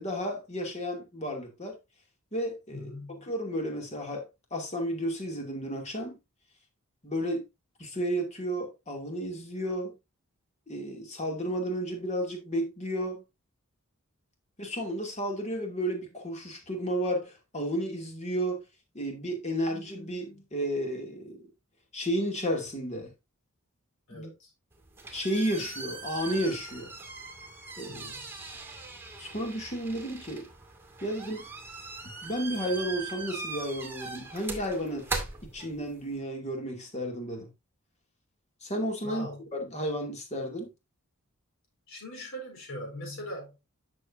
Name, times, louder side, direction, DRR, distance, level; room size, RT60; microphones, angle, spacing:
voice 1, 0.0-1.8 2.3-2.9 3.2-6.2 7.0-7.4 7.8-9.9 10.7-13.2 14.6-18.6 18.9-21.5 21.9-23.1 24.1-24.3 25.1-26.9 27.8-28.1 29.2-30.5 31.0-31.4 32.2-35.1 35.4-37.5 38.6-39.3 39.5-40.7, equal, 30° left, 2.5 m, -32 dB
voice 2, 2.7-3.3 24.1-24.5 27.9-28.3 39.0-39.4 41.9-43.6, equal, 60° left, 4.1 m, -41 dB
sound 1, 24.7-36.2, right 3 dB, 10° right, 2.1 m, -40 dB
10.0 x 6.7 x 2.7 m
head